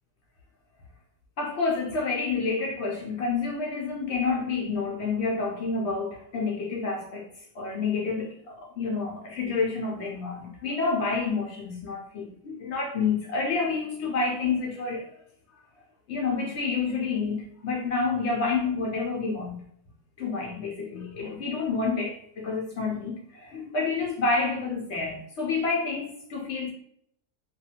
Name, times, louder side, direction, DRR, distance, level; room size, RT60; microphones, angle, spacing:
voice 1, 1.4-7.3 7.5-15.1 16.1-19.6 20.2-26.7, left 4 dB, 65° left, -2 dB, 0.6 m, -29 dB
2.6 x 2.3 x 2.7 m, 0.68 s
omnidirectional pair, 1.7 m